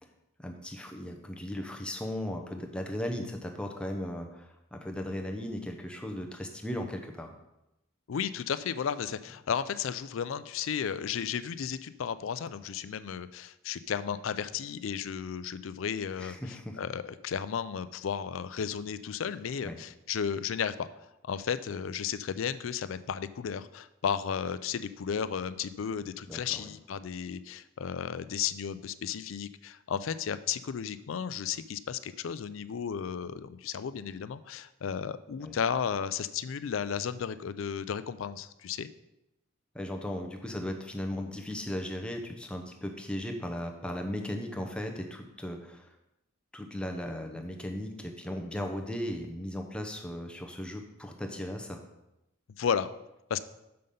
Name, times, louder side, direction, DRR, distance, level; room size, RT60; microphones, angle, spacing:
voice 1, 0.4-7.3 16.2-16.8 19.6-19.8 26.3-26.7 35.4-35.6 39.7-45.9 46.5-51.8, left 1 dB, 5° left, 3 dB, 0.7 m, -37 dB
voice 2, 8.1-38.9 52.6-52.9 53.3-53.4, left 7 dB, 80° left, 14 dB, 0.4 m, -34 dB
6.6 x 5.7 x 5.3 m, 0.91 s
head